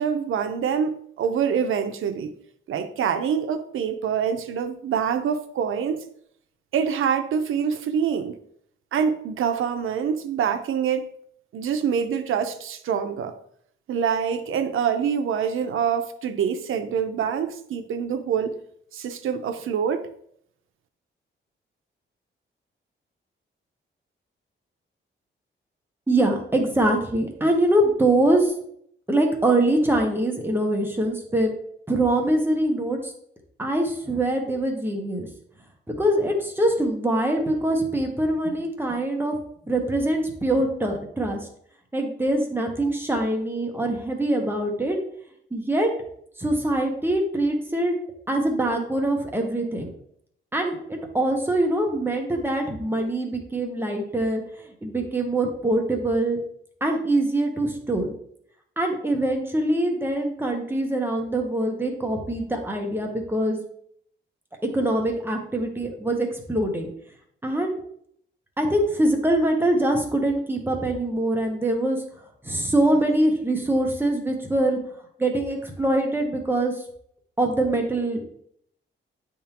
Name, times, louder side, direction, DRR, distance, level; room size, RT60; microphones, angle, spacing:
voice 1, 0.0-2.3 2.7-6.0 6.7-8.4 8.9-11.1 11.5-13.3 13.9-18.5 18.9-20.1, right 7 dB, 85° right, 0.6 m, -25 dB
voice 2, 26.1-28.5 29.1-31.5 31.9-33.1 33.6-35.3 35.9-39.4 39.7-41.4 41.9-45.0 45.5-45.9 46.4-47.9 48.3-49.9 50.5-54.4 54.8-56.4 56.8-58.1 58.8-63.6 64.6-66.9 67.4-67.7 68.6-72.0 72.4-74.8 75.2-76.8 77.4-78.2, right 1 dB, 10° right, 0.9 m, -23 dB
9.3 x 3.6 x 2.9 m
wide cardioid pair, 140°, 20 cm